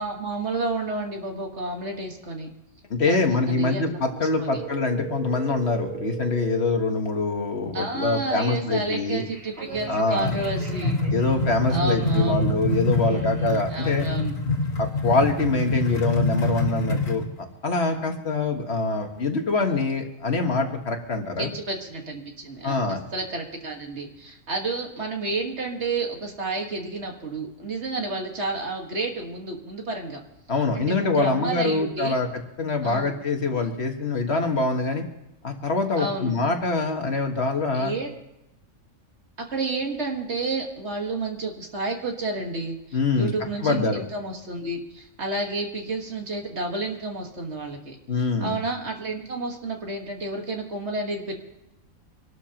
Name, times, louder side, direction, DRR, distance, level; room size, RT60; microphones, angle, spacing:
voice 1, 0.0-2.5 3.0-4.6 7.7-11.0 11.7-12.5 13.0-14.4 21.4-30.2 30.7-32.2 32.8-33.1 36.0-36.4 37.7-38.1 39.4-48.0 48.4-51.3, right 2 dB, 55° right, 2 dB, 1.9 m, -31 dB
voice 2, 2.9-9.2 9.9-10.3 11.1-14.0 14.8-17.2 17.6-21.5 22.6-23.0 30.5-32.3 32.6-35.0 35.4-37.9 42.9-43.3 43.6-44.0 48.1-48.6, left 3 dB, 55° left, 4 dB, 1.7 m, -24 dB
sound 1, 4.5-6.7 8.9-11.3 11.7-12.0, right 6 dB, 85° right, 2.9 m, -37 dB
sound 2, 9.7-17.3, left 2 dB, 80° left, 1.9 m, -26 dB
26.0 x 12.5 x 2.9 m, 0.88 s
omnidirectional pair, 1.4 m